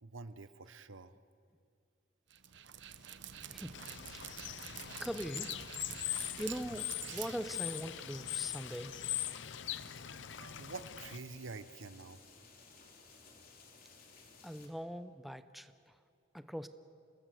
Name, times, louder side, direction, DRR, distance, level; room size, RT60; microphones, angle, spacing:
voice 1, 0.0-1.2 10.3-12.2, right 4 dB, 85° right, 13 dB, 0.9 m, -47 dB
Dog, 2.3-8.1, right 9 dB, 65° right, 1.0 m, -48 dB
voice 2, 3.5-4.5 5.0-5.7 6.4-8.9 9.8-9.9 14.4-15.7 16.3-16.7, equal, ahead, 10 dB, 0.7 m, -42 dB
Bird / Water, 3.7-11.2, left 12 dB, 70° left, 0.7 m, -41 dB
sound 1, 6.1-14.7, left 4 dB, 50° left, 3.4 m, -58 dB
28.0 x 19.5 x 7.8 m, 2.3 s
head